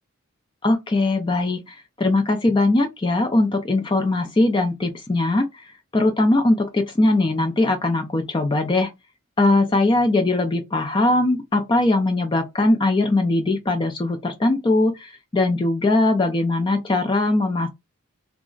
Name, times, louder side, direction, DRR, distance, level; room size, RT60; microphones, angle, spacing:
voice 1, 0.6-8.9 9.4-17.7, left 2 dB, 20° left, 0.3 m, -20 dB
2.3 x 2.0 x 3.7 m
head